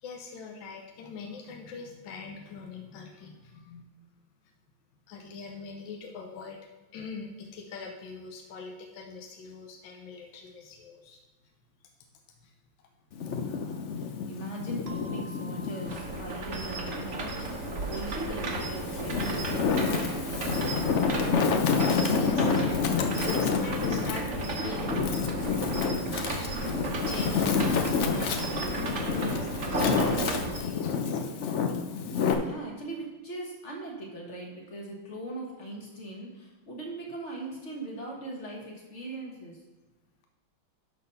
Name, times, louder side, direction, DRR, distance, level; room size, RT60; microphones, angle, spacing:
voice 1, 0.0-3.9 5.1-6.6 6.9-11.2 12.4-12.5 22.1-25.0 27.0-31.2, left 5 dB, 80° left, 3 dB, 1.5 m, -43 dB
Wind, 13.1-16.0 16.5-17.8 18.4-32.3, left 5 dB, 65° left, 0.7 m, -29 dB
voice 2, 13.3-20.0 32.4-39.6, right 2 dB, 40° left, -1 dB, 1.7 m, -40 dB
sound 1, 14.9-19.3, right 1 dB, 85° right, 1.8 m, -52 dB
sound 2, 15.9-30.6, right 2 dB, 45° right, 1.4 m, -33 dB
11.0 x 4.1 x 5.5 m, 1.1 s
omnidirectional pair, 2.1 m